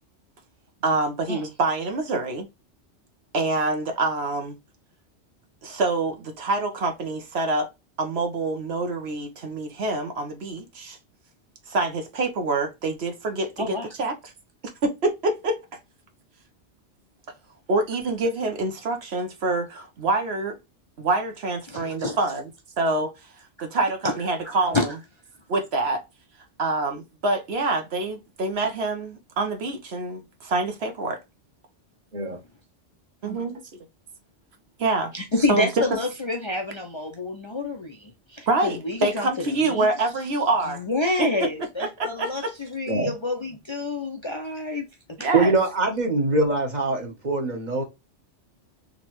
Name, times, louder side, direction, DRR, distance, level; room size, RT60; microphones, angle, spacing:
voice 1, 0.8-2.5 3.3-4.6 5.6-7.7 8.0-11.0 11.7-14.1 14.8-15.6 17.7-20.6 21.0-22.4 22.8-23.1 23.6-24.9 25.5-26.0 26.6-31.2 33.2-33.6 34.8-35.1 35.5-35.7 38.5-40.8 42.0-42.5 45.2-45.5, right 2 dB, 65° right, 1.1 m, -26 dB
voice 2, 13.6-13.9 21.7-22.2 24.4-24.9 35.1-39.9 40.6-44.9 45.2-45.3, left 2 dB, 35° left, 0.5 m, -28 dB
voice 3, 45.3-47.8, right 3 dB, 40° right, 1.2 m, -23 dB
3.9 x 3.1 x 3.0 m
omnidirectional pair, 1.2 m